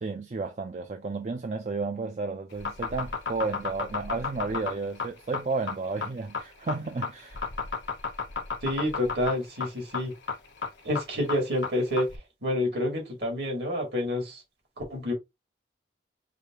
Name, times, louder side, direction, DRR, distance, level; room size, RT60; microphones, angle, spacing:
voice 1, 0.0-7.4, right 3 dB, 40° right, 0.4 m, -32 dB
sound 1, 2.5-12.2, left 5 dB, 85° left, 1.1 m, -32 dB
voice 2, 8.6-10.1 10.8-14.4 14.8-15.1, left 1 dB, 65° right, 2.1 m, -28 dB
4.9 x 2.4 x 2.9 m
head